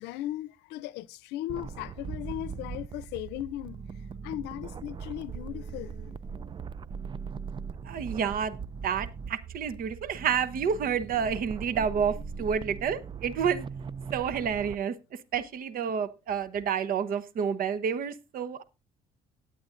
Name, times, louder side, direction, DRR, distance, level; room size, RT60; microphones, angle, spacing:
voice 1, 0.0-3.8 4.2-6.2, left 14 dB, 90° left, 0.6 m, -37 dB
sound 1, 1.5-14.8, right 6 dB, 30° right, 0.5 m, -40 dB
voice 2, 7.8-8.6 8.8-13.7 14.1-14.9 15.3-18.6, right 7 dB, 60° right, 1.0 m, -29 dB
18.0 x 8.6 x 2.6 m
cardioid pair, 110°, 17 cm